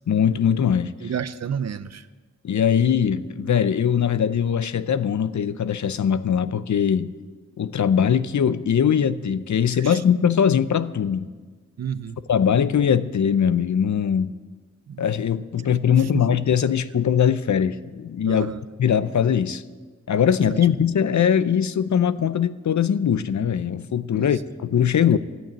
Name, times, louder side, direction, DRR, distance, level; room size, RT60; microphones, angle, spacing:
voice 1, 0.1-0.9 2.4-7.1 7.6-11.3 12.3-14.3 15.0-18.5 18.8-19.6 20.1-25.2, left 8 dB, 75° left, 0.6 m, -21 dB
voice 2, 1.0-2.1 9.7-10.0 11.8-12.2 14.9-15.0 16.0-16.2 18.3-18.6 20.5-20.6 24.1-24.4 25.1-25.2, right 7 dB, 60° right, 0.6 m, -31 dB
14.0 x 9.0 x 8.8 m
wide cardioid pair, 110°, 29 cm